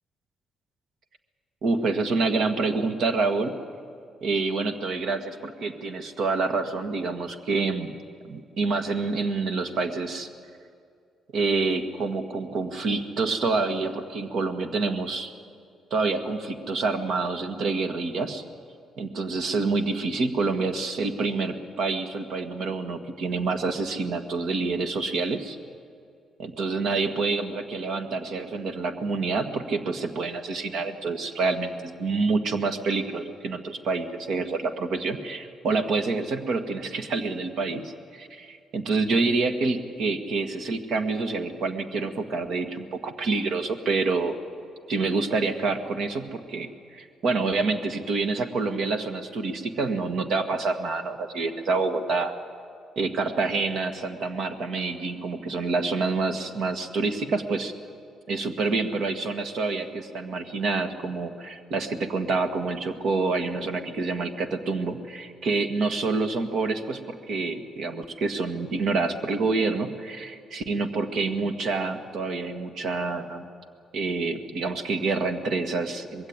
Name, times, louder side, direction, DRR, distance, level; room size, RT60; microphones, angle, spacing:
voice 1, 1.6-3.6 4.2-8.0 8.3-10.3 11.3-15.3 15.9-18.4 19.0-25.6 26.4-44.4 44.9-52.3 52.9-57.7 58.3-73.4 73.9-76.3, right 3 dB, 70° right, 7 dB, 1.7 m, -27 dB
21.5 x 16.0 x 9.7 m, 2.3 s
cardioid pair, 90°, 0 cm